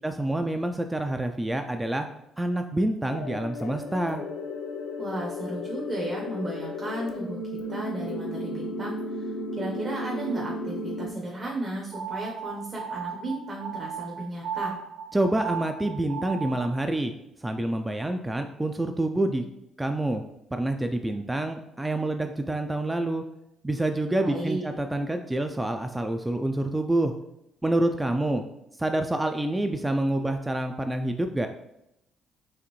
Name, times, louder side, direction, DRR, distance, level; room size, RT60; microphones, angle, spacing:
voice 1, 0.0-2.1 2.4-4.2 15.1-17.1 17.4-19.4 19.8-20.2 20.5-23.2 23.6-27.1 27.6-28.4 28.8-31.5, right 1 dB, 15° right, 6 dB, 0.3 m, -27 dB
sound 1, 3.1-11.1, left 1 dB, 80° left, 0.6 m, -34 dB
voice 2, 5.0-7.4 7.7-14.8 24.2-24.7, right 1 dB, 40° right, -2 dB, 0.9 m, -34 dB
sound 2, 11.9-16.8, right 7 dB, 75° right, 0.4 m, -36 dB
4.8 x 2.6 x 3.1 m, 0.83 s
supercardioid pair, 70°, 0 cm